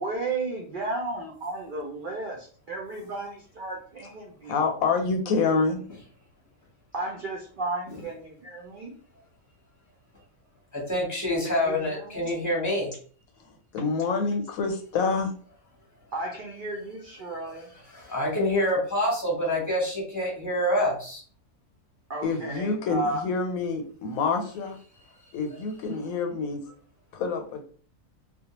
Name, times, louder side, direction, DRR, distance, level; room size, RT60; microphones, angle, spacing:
voice 1, 0.0-4.5 5.3-5.5 6.9-8.9 11.4-12.3 16.1-17.7 22.1-23.2, right 2 dB, 65° right, -1 dB, 0.5 m, -34 dB
voice 2, 4.4-5.8 13.7-15.3 22.2-24.8 25.3-26.6 27.1-27.6, left 4 dB, 85° left, 4 dB, 1.0 m, -27 dB
voice 3, 10.7-12.9 17.9-21.2, left 1 dB, 15° left, -3 dB, 0.8 m, -26 dB
2.4 x 2.1 x 2.9 m, 0.44 s
omnidirectional pair, 1.4 m